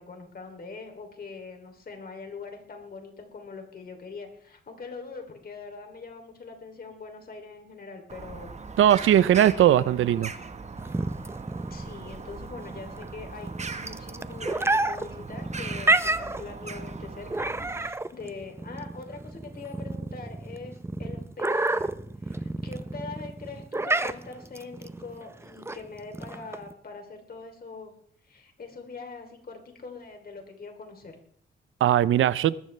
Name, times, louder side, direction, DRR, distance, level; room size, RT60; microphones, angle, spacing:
voice 1, 0.0-8.6 9.4-10.0 11.7-21.9 22.2-27.9 28.2-31.1, left 4 dB, 50° left, 3.0 m, -42 dB
Bird vocalization bird call bird song, 8.1-17.9, right 4 dB, 35° right, 1.1 m, -40 dB
voice 2, 8.8-10.3 31.8-32.6, right 11 dB, 80° right, 0.5 m, -19 dB
sound 1, 10.8-26.7, right 2 dB, 10° right, 0.6 m, -30 dB
20.0 x 14.0 x 3.3 m
cardioid pair, 105°, 20 cm